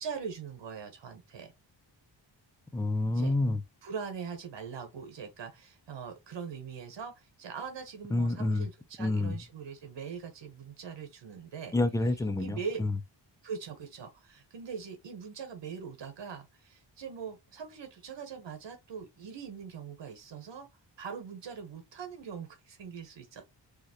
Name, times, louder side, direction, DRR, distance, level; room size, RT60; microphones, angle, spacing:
voice 1, 0.0-1.5 3.1-3.4 3.8-11.7 12.4-12.8 13.4-20.7 21.0-23.4, right 6 dB, 70° right, 1.2 m, -41 dB
voice 2, 2.7-3.6 8.1-8.7 9.0-9.4 11.7-13.0, left 2 dB, 10° left, 0.3 m, -28 dB
4.8 x 2.8 x 3.0 m
wide cardioid pair, 155°, 45 cm